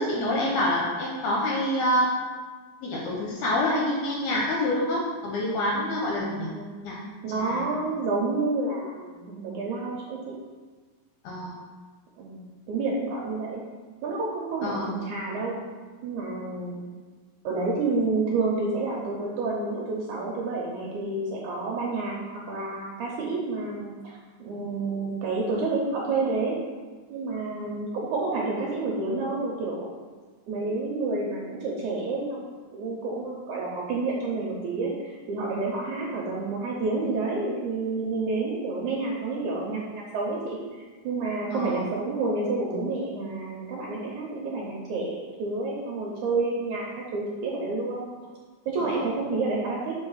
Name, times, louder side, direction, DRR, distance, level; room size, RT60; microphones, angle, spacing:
voice 1, 0.0-2.1 2.8-7.0 7.4-7.8 11.2-11.5 14.6-14.9 27.5-27.7 41.5-41.8 48.8-49.0, left 1 dB, 75° left, -2 dB, 1.9 m, -27 dB
voice 2, 6.9-10.2 12.2-12.4 12.7-13.6 14.0-15.6 16.0-16.8 17.4-26.6 27.1-29.9 30.5-32.4 32.7-48.1 48.7-49.9, right 3 dB, 75° right, -3 dB, 1.8 m, -29 dB
5.3 x 4.0 x 5.6 m, 1.4 s
omnidirectional pair, 4.3 m